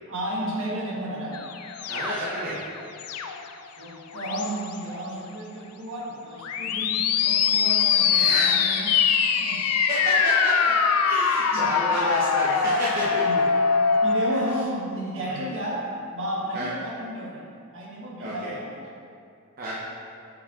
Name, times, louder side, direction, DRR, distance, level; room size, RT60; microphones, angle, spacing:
voice 1, 0.1-1.4 2.3-2.5 3.7-9.0 9.4-9.7 11.5-11.7 13.2-13.5 14.0-18.9, right 1 dB, 60° right, -4 dB, 1.5 m, -33 dB
sound 1, 1.3-3.5 4.1-4.7 6.4-14.6, left 6 dB, 90° left, 0.5 m, -23 dB
voice 2, 1.9-2.6 8.1-8.6 9.9-10.8 11.0-13.3 15.2-15.4 16.5-16.7 18.2-18.5 19.6-19.7, right 1 dB, 40° right, -8 dB, 0.9 m, -30 dB
8.0 x 5.0 x 3.7 m, 2.4 s
head